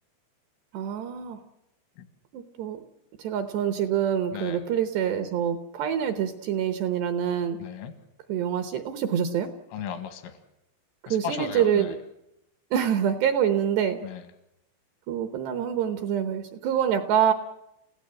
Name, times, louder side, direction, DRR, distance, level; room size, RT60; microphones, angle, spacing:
voice 1, 0.7-1.4 2.3-2.8 3.2-7.6 8.3-9.5 11.1-11.9 12.7-14.0 15.1-17.3, right 9 dB, 70° right, 9 dB, 2.7 m, -26 dB
voice 2, 4.3-4.6 7.6-7.9 9.7-10.4 11.1-11.9 14.0-14.2, left 7 dB, 80° left, 9 dB, 4.4 m, -35 dB
29.5 x 16.0 x 7.7 m, 0.86 s
omnidirectional pair, 5.9 m